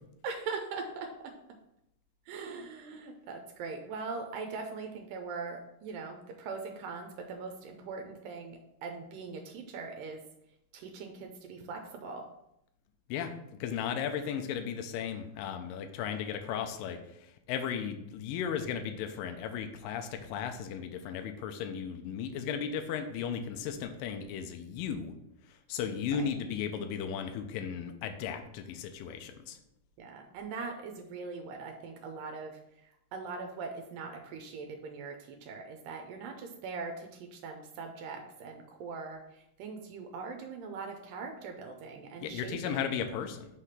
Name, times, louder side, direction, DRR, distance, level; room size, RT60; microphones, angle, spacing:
voice 1, 0.2-1.3 2.3-10.2 10.7-12.3 26.1-26.3 30.0-42.9, right 4 dB, 85° right, 3 dB, 2.3 m, -41 dB
voice 2, 13.6-25.1 25.7-29.6 42.2-43.5, left 7 dB, 85° left, 6 dB, 2.3 m, -35 dB
6.1 x 3.3 x 5.7 m, 0.80 s
omnidirectional pair, 3.9 m